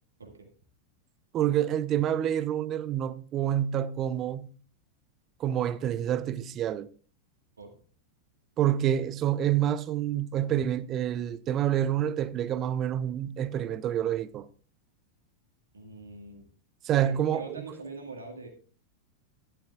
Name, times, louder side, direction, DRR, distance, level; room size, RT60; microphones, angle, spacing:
voice 1, 0.2-0.5 7.6-7.8 15.7-16.5 16.9-18.5, right 3 dB, 75° right, 2.0 m, -43 dB
voice 2, 1.3-4.5 5.4-6.9 8.6-14.5 16.8-17.6, right 11 dB, 30° right, 0.6 m, -28 dB
12.5 x 11.5 x 2.4 m
figure-of-eight pair, 90°, 0 cm